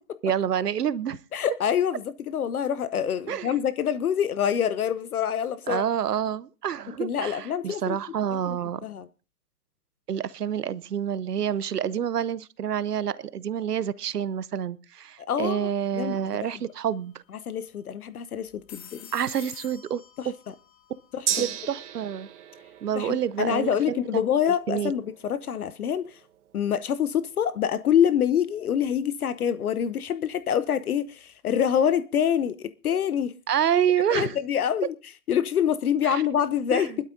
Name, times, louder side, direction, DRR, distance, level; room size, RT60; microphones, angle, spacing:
voice 1, 0.2-1.2 3.3-3.6 5.7-8.8 10.1-17.1 19.1-20.3 21.3-22.3 22.8-24.9 33.5-34.4 36.0-36.2 36.7-37.0, right 9 dB, 80° right, 0.9 m, -28 dB
voice 2, 1.3-5.8 7.0-8.0 8.5-8.6 8.8-9.1 15.3-16.2 17.5-19.1 21.1-21.5 23.0-26.2 26.5-33.3 34.1-34.9 35.3-36.9, left 9 dB, 70° left, 0.8 m, -26 dB
sound 1, 16.0-16.3 16.6-16.7 18.4-21.6, left 9 dB, 40° left, 1.9 m, -48 dB
Gong, 21.3-29.0 29.4-29.5, right 10 dB, 50° right, 1.3 m, -38 dB
22.0 x 12.5 x 2.6 m
hypercardioid pair, 140°, 46 cm